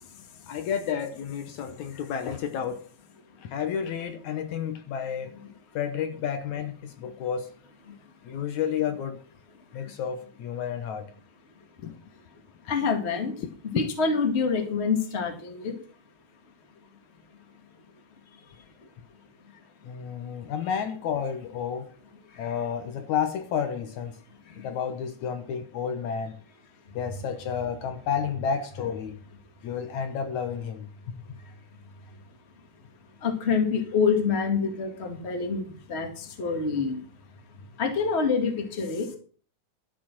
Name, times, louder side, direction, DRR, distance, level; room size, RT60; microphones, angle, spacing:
voice 1, 0.5-2.8 3.4-5.3 5.7-7.5 8.3-9.2 9.7-11.1 11.8-11.9 13.8-13.9 19.8-21.9 22.4-24.2 24.6-26.3 27.0-29.2 29.6-31.2, left 7 dB, 70° left, 2.2 m, -31 dB
voice 2, 12.7-13.3 13.6-15.7 33.2-35.6 35.9-37.0 37.8-39.2, left 5 dB, 25° left, 1.7 m, -26 dB
12.0 x 7.0 x 6.1 m
omnidirectional pair, 3.7 m